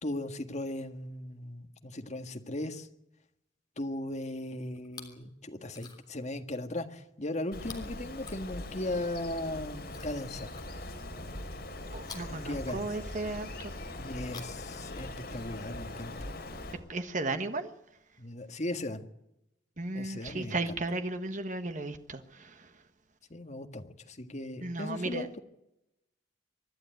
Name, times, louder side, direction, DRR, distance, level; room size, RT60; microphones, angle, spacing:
voice 1, 0.0-2.9 3.8-10.5 12.3-12.9 14.0-16.3 18.2-19.0 20.0-20.8 23.3-25.3, left 1 dB, 40° left, 1.7 m, -37 dB
Chewing mastication, 4.8-5.3 5.6-6.2 7.6-9.0 9.8-11.1 12.0-13.3 14.1-15.5 16.5-16.6, left 5 dB, 25° left, 3.4 m, -52 dB
Bird, 7.5-16.7, left 1 dB, 55° left, 4.6 m, -41 dB
voice 2, 11.9-13.7 16.9-17.7 19.8-22.8 24.6-25.3, right 2 dB, 45° right, 1.4 m, -35 dB
24.0 x 12.0 x 9.3 m
head